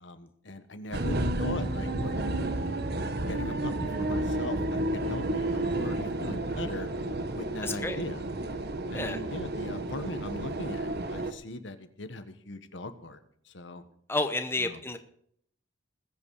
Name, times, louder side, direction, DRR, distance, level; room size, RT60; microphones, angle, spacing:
voice 1, 0.0-2.1 3.3-6.9 7.3-8.2 8.9-13.2 13.5-13.8 14.7-14.8, left 2 dB, 65° left, 10 dB, 1.4 m, -39 dB
sound 1, 0.9-11.3, right 1 dB, 55° right, 1.2 m, -31 dB
voice 2, 7.6-8.0 8.9-9.2 14.1-15.0, left 2 dB, 10° left, 8 dB, 0.9 m, -30 dB
20.5 x 8.3 x 4.9 m, 0.66 s
head